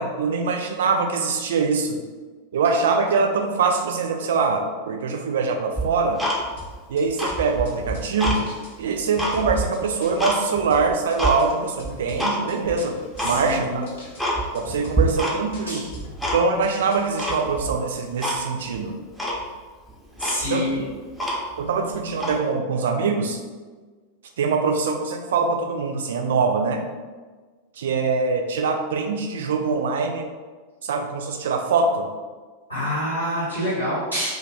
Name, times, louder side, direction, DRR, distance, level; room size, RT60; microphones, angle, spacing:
voice 1, 0.0-2.0 2.5-6.2 6.9-8.5 8.8-13.9 14.5-15.8 16.2-19.0 20.5-20.7 21.6-23.4 24.4-26.8 27.8-30.3 30.8-32.1, right 4 dB, 60° right, 4 dB, 0.3 m, -23 dB
Tick-tock, 5.8-6.8 7.1-8.4 8.8-10.4 10.8-11.4 11.8-12.4 12.7-12.8 13.1-13.4 13.8-13.9 14.2-14.7 14.9-15.6 15.9-16.7 17.2-17.8 18.2-18.4 18.7-18.8 19.2-19.4 19.9-20.0 20.2-21.7 22.1-22.4, right 1 dB, ahead, 0.5 m, -26 dB
sound 1, 6.6-17.6, left 2 dB, 55° left, 0.6 m, -43 dB
voice 2, 13.2-13.8 15.7-15.9 20.2-20.8 32.7-34.3, equal, 85° left, -8 dB, 1.4 m, -26 dB
2.3 x 2.3 x 3.3 m, 1.4 s
figure-of-eight pair, 90°, 0 cm